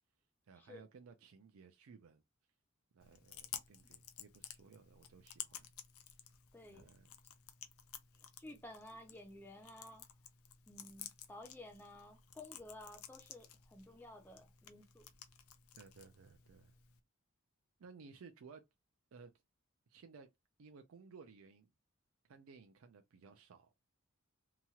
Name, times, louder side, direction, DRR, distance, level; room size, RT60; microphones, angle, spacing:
voice 1, 0.5-2.2 2.9-5.7 6.1-6.2 6.7-7.1 15.7-16.7 17.8-18.6 19.1-19.3 19.9-20.3 20.6-21.7 22.2-23.7, right 5 dB, 70° right, 0.4 m, -58 dB
Chewing mastication, 3.0-17.0, left 10 dB, 75° left, 0.5 m, -54 dB
voice 2, 6.5-6.9 8.1-10.1 10.7-15.1, left 1 dB, 10° left, 0.4 m, -54 dB
2.9 x 2.8 x 2.3 m
head